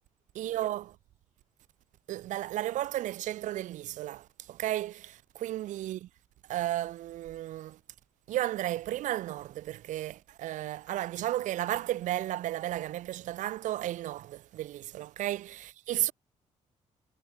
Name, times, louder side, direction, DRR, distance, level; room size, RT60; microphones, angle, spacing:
voice 1, 0.3-1.0 2.1-6.1 6.5-7.8 8.3-16.1, right 14 dB, 80° right, 0.7 m, -33 dB
cardioid pair, 105°, 13 cm